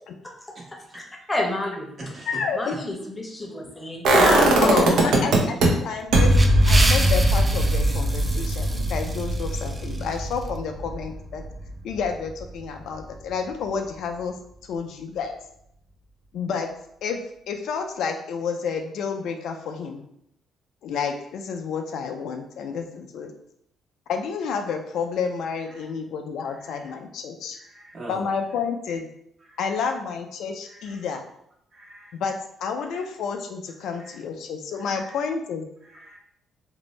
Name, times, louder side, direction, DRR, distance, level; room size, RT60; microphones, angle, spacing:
voice 1, 0.7-1.0 1.3-1.9 2.5-4.6 5.1-5.2, left 1 dB, 20° left, 1 dB, 0.7 m, -30 dB
voice 2, 2.3-2.7 4.6-6.4 6.7-11.4 11.8-14.4 14.7-15.3 16.3-16.7 17.0-17.2 17.5-20.0 20.8-23.3 24.1-27.6 28.1-29.1 29.6-31.2 32.1-35.7, left 6 dB, 75° left, 5 dB, 0.3 m, -30 dB
sound 1, 4.0-5.7 6.1-12.0 12.3-12.4, right 1 dB, 70° right, 0.6 m, -20 dB
sound 2, 6.0-10.5, right 2 dB, 25° right, 0.4 m, -31 dB
voice 3, 26.5-26.9 27.5-28.3 29.4-29.9 30.6-31.0 31.7-32.1 32.9-33.0 33.9-34.2 34.7-35.2 35.8-36.2, right 1 dB, 45° right, -4 dB, 1.1 m, -44 dB
2.6 x 2.0 x 3.1 m, 0.73 s
supercardioid pair, 65°, 0 cm